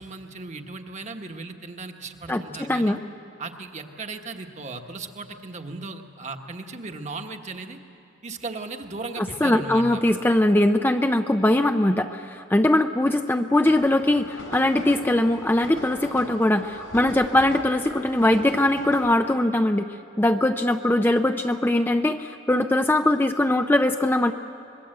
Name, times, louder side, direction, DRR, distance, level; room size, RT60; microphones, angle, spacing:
voice 1, 0.0-3.0 3.4-7.8 8.2-10.0, right 3 dB, 35° right, 5 dB, 1.3 m, -36 dB
voice 2, 2.3-3.0 9.2-19.9 20.2-24.3, left 1 dB, 10° left, 6 dB, 0.4 m, -21 dB
sound 1, 13.7-19.1, equal, 80° left, 4.7 m, -39 dB
25.5 x 21.0 x 7.8 m, 2.8 s
head